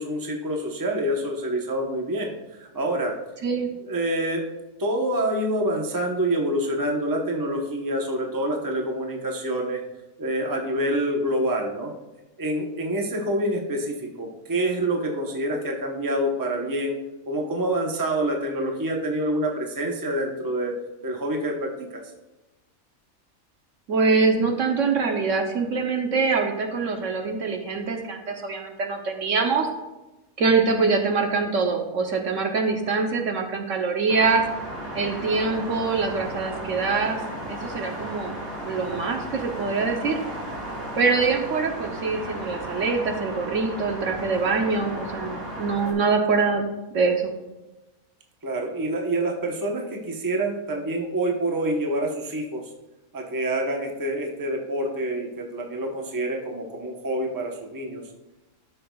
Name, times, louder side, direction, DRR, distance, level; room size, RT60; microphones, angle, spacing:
voice 1, 0.0-3.1 3.8-4.4 4.8-9.8 10.2-11.9 12.4-17.0 17.3-20.7 21.0-22.0 48.4-52.6 53.1-58.0, right 1 dB, 15° right, 1 dB, 0.9 m, -27 dB
voice 2, 23.9-29.7 30.4-34.4 34.9-37.2 37.5-38.3 38.6-40.2 41.0-46.7 46.9-47.3, right 4 dB, 65° right, 3 dB, 1.2 m, -24 dB
sound 1, 34.1-45.9, right 1 dB, 40° right, 2.0 m, -35 dB
13.0 x 6.7 x 2.3 m, 1.0 s
omnidirectional pair, 1.5 m